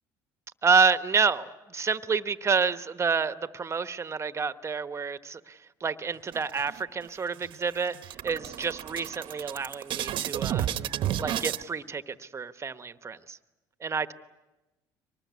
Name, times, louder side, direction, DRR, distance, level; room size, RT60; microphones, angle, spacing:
voice 1, 0.6-10.7 11.2-13.4 13.8-14.1, right 5 dB, 30° right, 12 dB, 1.1 m, -28 dB
sound 1, 6.3-7.1 7.4-7.6 7.9-11.6, right 11 dB, 60° right, 1.0 m, -32 dB
24.5 x 20.0 x 9.6 m, 1.1 s
supercardioid pair, 85°, 10 cm